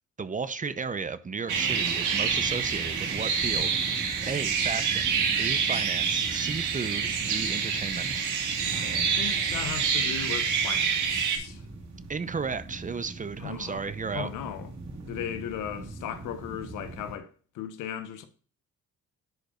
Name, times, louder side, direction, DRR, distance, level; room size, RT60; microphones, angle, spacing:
voice 1, 0.2-3.8 4.0-8.2 12.1-14.3, right 5 dB, 25° right, 0.7 m, -34 dB
sound 1, 1.5-17.2, right 2 dB, 65° right, 2.7 m, -41 dB
sound 2, 1.5-11.4, right 6 dB, 80° right, 1.8 m, -27 dB
voice 2, 8.7-11.6 13.4-13.8 14.1-14.7 15.1-17.3 17.5-18.3, left 9 dB, 85° left, 1.1 m, -37 dB
10.5 x 5.2 x 2.5 m
cardioid pair, 90°, 30 cm